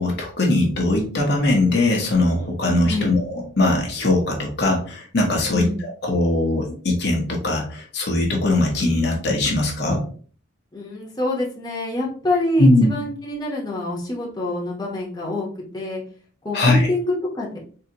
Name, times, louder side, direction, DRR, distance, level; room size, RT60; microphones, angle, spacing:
voice 1, 0.0-10.0 12.6-12.9 16.5-16.9, left 2 dB, 55° left, 0 dB, 0.9 m, -20 dB
voice 2, 5.5-5.8 10.7-16.0 16.4-17.6, left 1 dB, 20° left, -4 dB, 0.9 m, -26 dB
3.8 x 2.8 x 2.8 m, 0.43 s
head